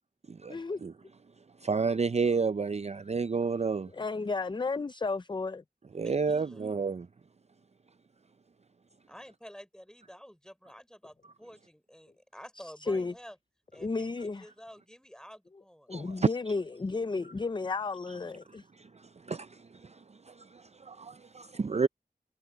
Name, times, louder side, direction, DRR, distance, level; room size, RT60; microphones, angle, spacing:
voice 1, 0.5-0.8 3.9-5.6 12.6-13.1 13.8-14.5 15.9-18.6, left 3 dB, 30° left, 0.4 m, -33 dB
voice 2, 1.6-3.9 5.9-7.1 15.9-16.3 18.8-21.9, right 5 dB, 40° right, 0.4 m, -31 dB
voice 3, 5.9-6.7 9.1-13.4 13.7-16.0, equal, 5° left, 4.7 m, -50 dB
wide cardioid pair, 60°, 17 cm